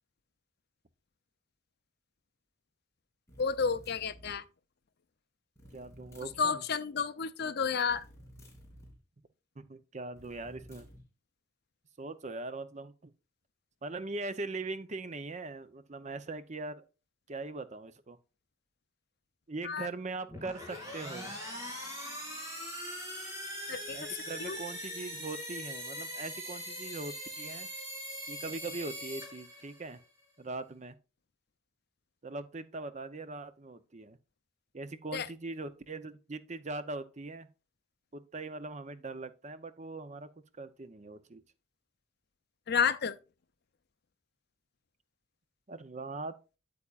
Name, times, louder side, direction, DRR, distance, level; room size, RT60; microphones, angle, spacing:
sound 1, 3.3-4.4 5.6-6.5 7.8-9.0 10.1-11.0, equal, 15° left, 2.9 m, -54 dB
voice 1, 3.4-4.4 6.4-8.0 19.6-19.9 23.7-24.1 24.4-24.6 35.1-35.3 42.7-43.1, left 6 dB, 55° left, 0.6 m, -31 dB
voice 2, 5.7-6.6 9.6-10.9 12.0-13.1 13.8-16.8 17.3-18.2 19.5-21.3 23.9-27.7 28.3-30.0 30.4-31.0 32.2-34.2 34.7-37.5 38.1-40.3 40.6-41.4 45.7-46.4, right 3 dB, 35° right, 0.7 m, -41 dB
sound 2, 20.3-30.0, equal, 15° right, 3.1 m, -41 dB
8.4 x 8.4 x 2.4 m
head